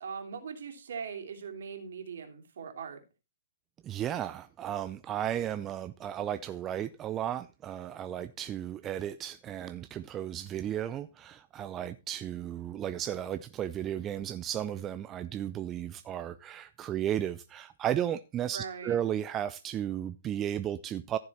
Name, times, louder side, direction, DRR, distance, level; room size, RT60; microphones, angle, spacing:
voice 1, 0.0-3.0 18.5-19.0, right 6 dB, 60° right, 3.0 m, -40 dB
voice 2, 3.8-21.2, right 10 dB, 20° right, 0.5 m, -34 dB
14.5 x 6.8 x 4.2 m
figure-of-eight pair, 120°, 0 cm